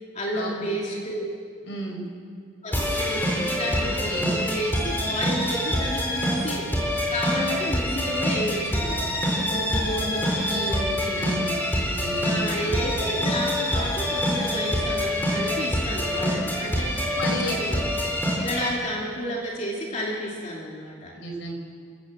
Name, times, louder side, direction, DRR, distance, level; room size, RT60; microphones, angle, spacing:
voice 1, 0.1-1.3 2.6-9.1 12.2-17.9 18.4-21.1, equal, 35° left, -3 dB, 2.9 m, -31 dB
voice 2, 1.6-2.0 3.8-4.3 9.4-12.8 17.2-17.5 21.1-21.5, equal, 65° left, 2 dB, 5.2 m, -33 dB
sound 1, 2.7-18.7, equal, 10° left, 4.2 m, -26 dB
28.5 x 17.5 x 7.5 m, 2.2 s
head